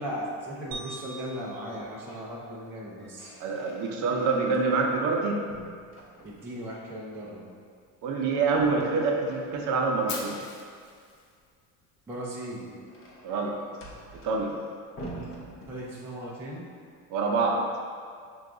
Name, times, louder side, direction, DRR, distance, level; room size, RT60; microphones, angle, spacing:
voice 1, 0.0-3.3 6.2-7.4 12.1-12.7 15.7-16.7, equal, 5° right, -5 dB, 0.3 m, -37 dB
sound 1, 0.7-3.1, right 4 dB, 80° right, 0.8 m, -44 dB
sound 2, 1.9-2.4 2.7-5.2 5.5-6.7 8.5-10.1 12.1-16.3, right 1 dB, 35° left, 0.6 m, -47 dB
voice 2, 3.4-5.4 8.0-10.4 13.2-13.6 14.1-14.6 17.1-17.7, right 4 dB, 55° right, 1 dB, 0.6 m, -26 dB
Fire, 10.1-12.1, left 3 dB, 65° left, 0.8 m, -41 dB
5.8 x 2.3 x 3.7 m, 2.1 s
cardioid pair, 160°, 37 cm